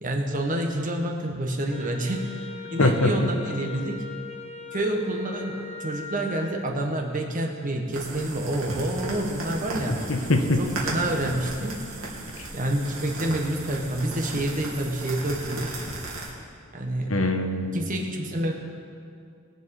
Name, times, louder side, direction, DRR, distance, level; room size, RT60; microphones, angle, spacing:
voice 1, 0.0-2.4 2.7-4.0 4.7-5.6 5.8-10.0 10.6-11.8 12.5-15.7 16.7-17.1 17.7-18.5, right 1 dB, 40° right, 1 dB, 1.6 m, -28 dB
Wind instrument woodwind instrument, 1.7-6.6, left 5 dB, 30° left, 1.4 m, -39 dB
voice 2, 2.8-3.1 10.1-10.6 17.1-17.8, left 2 dB, 80° left, 5 dB, 1.3 m, -22 dB
sound 1, 7.9-16.3, right 2 dB, 75° right, 3.0 m, -35 dB
22.0 x 7.7 x 5.0 m, 2.4 s
head